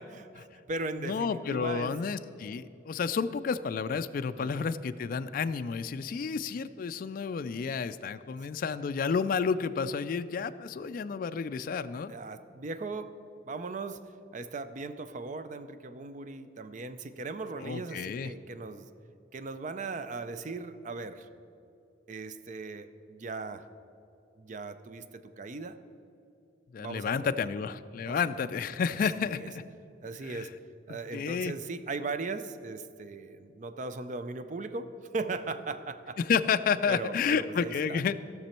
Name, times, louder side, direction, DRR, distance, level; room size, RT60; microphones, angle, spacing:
voice 1, 0.0-2.0 4.3-4.7 8.5-8.6 12.1-13.1 13.5-14.0 14.3-18.9 19.3-21.3 22.1-23.7 24.4-25.8 26.8-27.7 28.0-28.5 29.2-29.5 30.0-30.5 30.9-36.2 36.9-38.1, right 3 dB, 40° right, 11 dB, 0.5 m, -38 dB
voice 2, 1.0-12.1 17.6-18.3 26.7-29.4 30.2-30.5 31.1-31.5 36.2-38.2, left 6 dB, 50° left, 11 dB, 0.3 m, -31 dB
16.5 x 6.1 x 4.4 m, 2.8 s
head